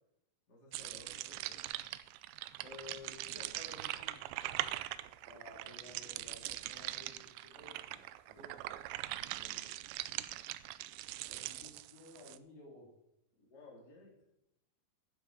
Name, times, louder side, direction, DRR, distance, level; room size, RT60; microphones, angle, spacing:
voice 1, 0.5-1.6 2.6-4.2 9.0-9.7 13.4-14.1, left 3 dB, 25° left, -3 dB, 3.8 m, -54 dB
sound 1, 0.7-12.4, right 16 dB, 85° right, 2.4 m, -42 dB
voice 2, 5.2-8.7 11.3-12.9, left 1 dB, 55° left, -3 dB, 4.4 m, -56 dB
12.5 x 10.0 x 4.7 m, 0.82 s
omnidirectional pair, 4.3 m